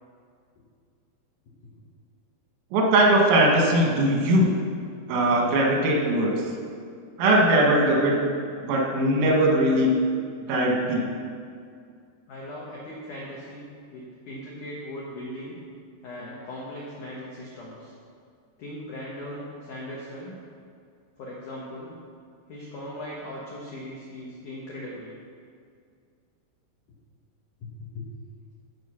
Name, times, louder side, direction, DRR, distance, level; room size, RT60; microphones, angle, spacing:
voice 1, 2.7-4.5 5.1-6.5 7.2-8.2 8.6-10.0 10.5-11.1, right 1 dB, 85° right, -1 dB, 4.2 m, -20 dB
voice 2, 12.3-15.6 16.0-17.9 18.6-20.4 21.2-22.0 22.5-25.1 27.6-28.1, left 1 dB, 85° left, -5 dB, 1.8 m, -39 dB
14.5 x 4.9 x 5.7 m, 2.3 s
omnidirectional pair, 5.7 m